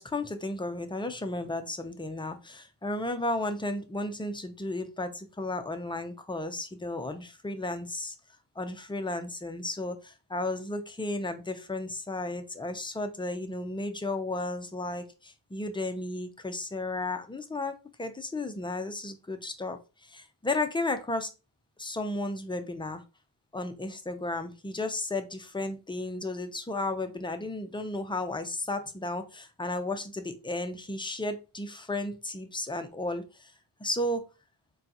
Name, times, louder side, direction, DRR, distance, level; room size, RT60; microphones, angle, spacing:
voice 1, 0.0-8.1 8.6-21.3 21.8-23.0 23.5-33.5 33.8-34.2, left 2 dB, 10° left, 7 dB, 0.5 m, -34 dB
3.7 x 2.3 x 2.8 m, 0.30 s
cardioid pair, 50°, 47 cm